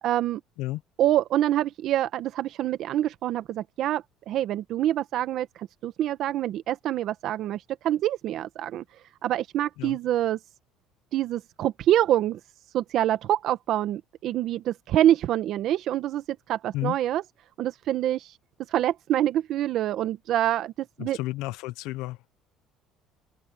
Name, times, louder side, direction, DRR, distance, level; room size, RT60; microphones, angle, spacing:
voice 1, 0.0-0.4 1.0-8.8 9.2-10.4 11.1-12.4 12.7-17.2 17.6-18.3 18.7-21.2, right 12 dB, 60° right, 1.4 m, -26 dB
voice 2, 21.0-22.2, left 17 dB, 85° left, 1.1 m, -32 dB
open air
cardioid pair, 130°, 0 cm